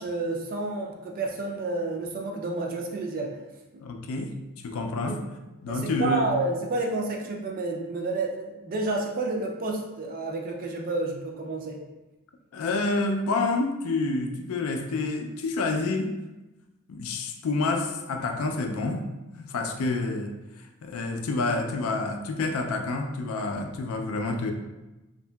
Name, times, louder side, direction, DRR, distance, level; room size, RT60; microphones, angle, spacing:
voice 1, 0.0-3.4 5.1-5.2 5.7-11.8, right 2 dB, 40° right, 1 dB, 0.4 m, -30 dB
voice 2, 3.8-4.3 4.6-5.2 5.6-6.2 12.5-16.1 16.9-19.0 19.4-20.3 20.8-24.5, left 3 dB, 65° left, 4 dB, 0.3 m, -28 dB
2.8 x 2.5 x 2.2 m, 1.0 s
head